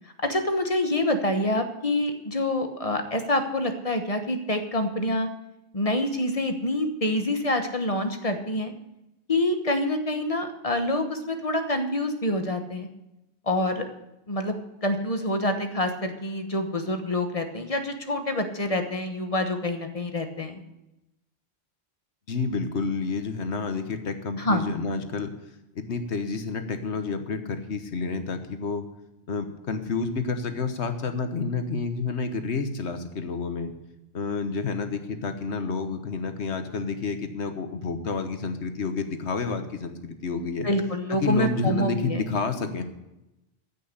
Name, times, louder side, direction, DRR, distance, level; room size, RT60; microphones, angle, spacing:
voice 1, 0.2-5.3 5.7-8.7 9.3-12.9 13.5-13.8 14.3-14.5 14.8-20.6 24.4-24.7 40.4-42.2, left 1 dB, 35° left, 7 dB, 1.2 m, -26 dB
voice 2, 22.3-25.3 25.7-28.9 29.3-33.7 34.1-40.7 41.1-42.8, left 4 dB, 75° left, 8 dB, 1.5 m, -29 dB
14.5 x 6.2 x 8.2 m, 0.93 s
omnidirectional pair, 1.1 m